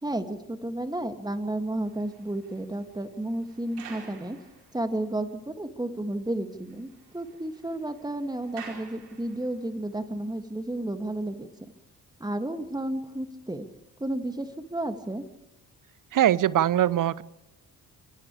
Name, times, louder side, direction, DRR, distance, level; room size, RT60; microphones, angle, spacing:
voice 1, 0.0-4.4 4.7-11.5 12.2-13.6 14.0-15.2, right 1 dB, 10° right, 7 dB, 2.5 m, -32 dB
sound 1, 1.6-5.1 5.6-5.7 6.1-6.2 6.5-9.7, right 6 dB, 75° right, 4.9 m, -50 dB
voice 2, 16.1-17.2, right 11 dB, 40° right, 22 dB, 0.9 m, -22 dB
29.5 x 27.5 x 3.5 m, 0.91 s
figure-of-eight pair, 40°, 49 cm